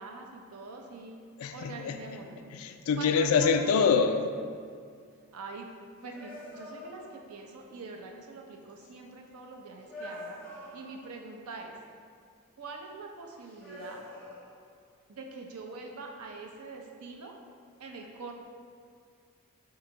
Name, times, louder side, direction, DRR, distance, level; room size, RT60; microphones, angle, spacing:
voice 1, 0.0-1.2 1.5-2.4 3.0-3.8 5.3-5.7 6.0-10.4 10.7-11.7 12.6-14.0 15.1-17.4 17.8-18.3, right 3 dB, 90° right, 1 dB, 0.6 m, -44 dB
sound 1, 0.7-1.1 5.2-5.4 6.1-7.5 8.4-8.5 9.8-11.3 13.4-14.8, left 1 dB, 5° left, 0.9 m, -46 dB
voice 2, 1.4-2.0 2.5-4.2, left 5 dB, 75° left, 8 dB, 0.3 m, -25 dB
3.9 x 2.8 x 4.4 m, 2.2 s
head